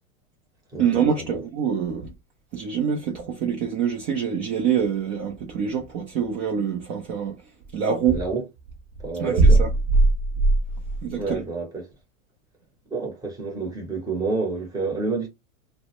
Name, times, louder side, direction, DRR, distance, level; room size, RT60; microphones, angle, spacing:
voice 1, 0.8-2.1 2.5-7.4 7.7-8.2 9.2-9.7 11.0-11.4, right 5 dB, 35° right, 0.4 m, -23 dB
voice 2, 8.1-8.4 9.0-9.6 11.2-11.9 12.9-15.3, right 3 dB, 10° right, 0.7 m, -29 dB
2.1 x 2.1 x 2.9 m
hypercardioid pair, 125°, 44 cm